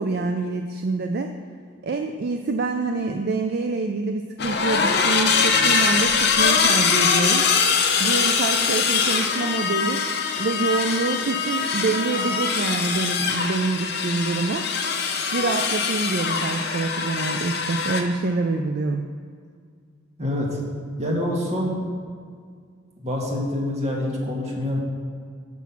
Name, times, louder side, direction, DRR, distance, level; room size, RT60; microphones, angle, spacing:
voice 1, 0.0-1.3 1.8-7.5 8.0-10.0 10.4-14.6 15.3-19.1, right 3 dB, 50° right, 6 dB, 0.4 m, -26 dB
sound 1, 4.4-18.0, left 5 dB, 55° left, 0.8 m, -22 dB
voice 2, 20.2-20.6 21.0-21.9 23.0-24.8, left 1 dB, 35° right, -3 dB, 1.7 m, -26 dB
5.9 x 5.9 x 7.1 m, 2.1 s
head